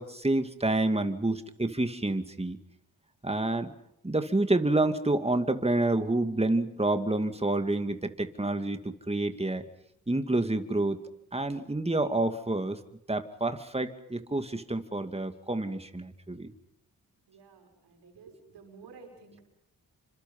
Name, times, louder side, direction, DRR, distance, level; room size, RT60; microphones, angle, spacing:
voice 1, 0.0-2.6 3.2-3.7 4.0-8.8 9.1-9.6 10.1-11.0 11.3-12.8 13.1-16.5, right 2 dB, 15° right, 8 dB, 2.4 m, -28 dB
voice 2, 17.3-19.4, right 4 dB, 90° right, 2 dB, 6.1 m, -52 dB
27.5 x 26.0 x 5.6 m, 0.79 s
cardioid pair, 50°, 40 cm